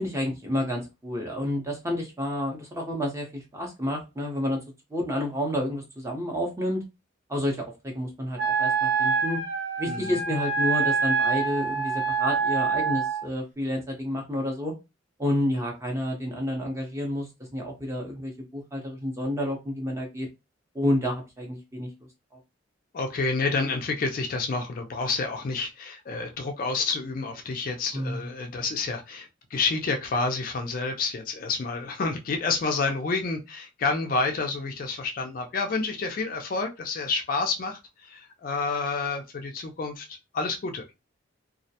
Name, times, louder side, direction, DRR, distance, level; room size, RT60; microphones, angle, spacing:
voice 1, 0.0-4.6 4.9-6.8 7.3-9.4 9.8-14.7 15.2-20.3 20.7-21.9 27.9-28.2, left 1 dB, 15° right, 0.6 m, -30 dB
Wind instrument woodwind instrument, 8.4-13.3, right 5 dB, 60° right, 0.8 m, -26 dB
voice 2, 22.9-40.1 40.3-40.8, left 4 dB, 45° left, 0.3 m, -29 dB
2.3 x 2.0 x 2.7 m
head